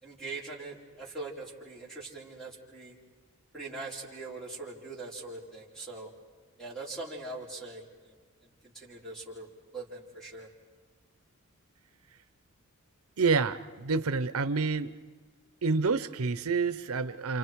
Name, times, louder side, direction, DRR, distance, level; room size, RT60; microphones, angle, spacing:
voice 1, 0.0-3.0 3.5-6.1 6.6-8.1 8.4-9.5 9.7-10.5, right 3 dB, 5° left, -3 dB, 4.4 m, -42 dB
voice 2, 13.2-15.0 15.6-17.4, right 4 dB, 80° right, 13 dB, 0.7 m, -28 dB
30.0 x 28.0 x 4.7 m, 1.5 s
head